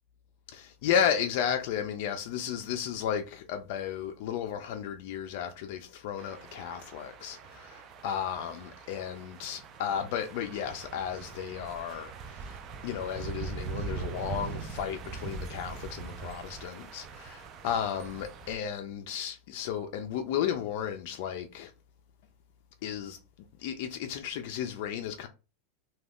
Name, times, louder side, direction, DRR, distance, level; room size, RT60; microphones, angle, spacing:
voice 1, 0.5-12.6 12.8-21.7 22.8-23.2 23.6-25.3, left 8 dB, 55° left, 0.3 m, -33 dB
sound 1, 6.2-18.6, right 5 dB, 30° right, 0.3 m, -42 dB
2.4 x 2.2 x 3.4 m
supercardioid pair, 165°, 0 cm